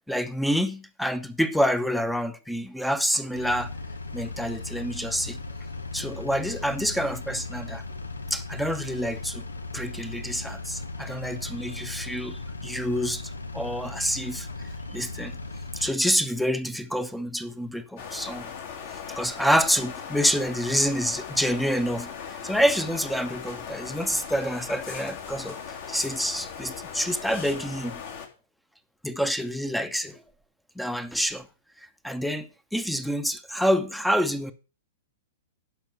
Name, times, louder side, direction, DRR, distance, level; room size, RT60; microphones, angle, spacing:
voice 1, 0.1-3.7 4.1-5.4 5.9-7.8 8.3-9.4 9.7-14.5 14.9-15.4 15.7-18.5 18.9-25.6 25.9-28.0 29.0-30.2 30.8-31.5 32.0-34.5, equal, ahead, 1.0 m, -27 dB
Engine, 3.3-16.0, left 3 dB, 75° left, 1.1 m, -37 dB
sound 1, 18.0-28.3, left 7 dB, 50° left, 2.9 m, -38 dB
11.5 x 5.4 x 7.0 m
figure-of-eight pair, 105°, 0 cm